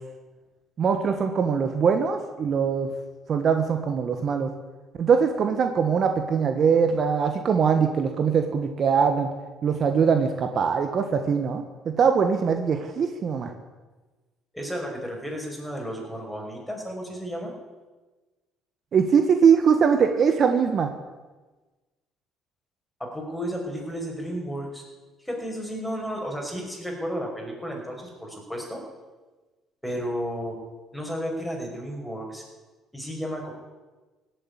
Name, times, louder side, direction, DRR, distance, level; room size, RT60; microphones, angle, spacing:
voice 1, 0.8-2.9 3.3-4.5 5.0-9.3 9.6-13.5 18.9-20.9, right 6 dB, 50° right, 6 dB, 1.4 m, -22 dB
voice 2, 14.5-17.5 23.0-24.8 25.2-28.8 29.8-30.6 30.9-32.4 32.9-33.5, equal, ahead, 0 dB, 5.6 m, -33 dB
17.0 x 8.2 x 9.8 m, 1.3 s
supercardioid pair, 90°, 0 cm